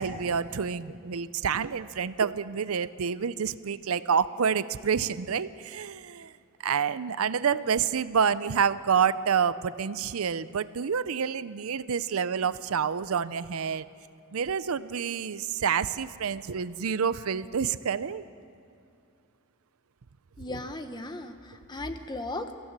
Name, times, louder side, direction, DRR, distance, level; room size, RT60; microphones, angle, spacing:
voice 1, 0.0-6.3 6.6-13.8 14.3-18.3, right 7 dB, 80° right, 15 dB, 0.5 m, -28 dB
voice 2, 20.4-22.5, left 2 dB, 20° left, 8 dB, 1.0 m, -36 dB
23.0 x 15.5 x 7.5 m, 2.4 s
head